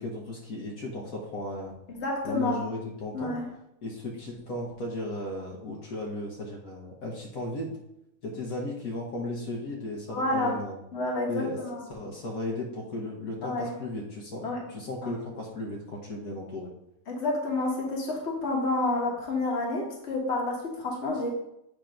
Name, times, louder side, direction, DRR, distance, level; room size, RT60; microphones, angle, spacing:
voice 1, 0.0-1.7 2.2-3.4 3.8-7.8 8.2-10.8 11.3-11.6 11.9-16.7, left 1 dB, 75° left, -2 dB, 1.6 m, -35 dB
voice 2, 1.9-2.6 3.1-3.4 10.1-10.6 10.9-11.9 13.4-13.7 14.4-14.6 15.0-15.1 17.1-21.3, left 2 dB, 50° left, -1 dB, 1.6 m, -29 dB
8.2 x 3.0 x 5.1 m, 0.82 s
omnidirectional pair, 1.5 m